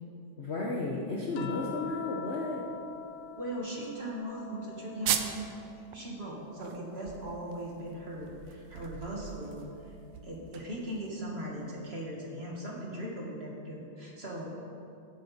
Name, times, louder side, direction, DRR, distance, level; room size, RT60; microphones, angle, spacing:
voice 1, 0.4-2.6, left 2 dB, 45° left, -2 dB, 0.9 m, -33 dB
sound 1, 1.4-5.8 6.2-7.8 9.4-9.5, left 7 dB, 85° left, 1.5 m, -46 dB
voice 2, 3.4-5.4 5.9-9.6 10.2-14.5, right 1 dB, 30° right, -3 dB, 1.8 m, -39 dB
sound 2, 5.0-5.5 5.9-6.0 6.4-11.1, right 9 dB, 70° right, 1.3 m, -37 dB
16.5 x 8.1 x 4.2 m, 2.7 s
omnidirectional pair, 2.3 m